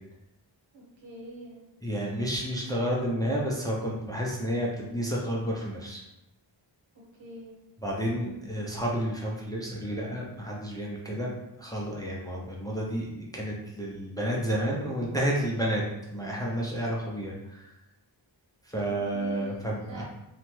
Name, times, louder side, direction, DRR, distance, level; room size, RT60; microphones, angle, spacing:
voice 1, 0.7-1.6 7.1-7.5 18.8-20.0, right 1 dB, 80° right, -4 dB, 1.1 m, -45 dB
voice 2, 1.8-6.0 7.8-15.8 16.1-17.7 18.6-20.0, equal, 10° left, -3 dB, 0.4 m, -31 dB
2.9 x 2.2 x 3.0 m, 0.90 s
wide cardioid pair, 105°, 45 cm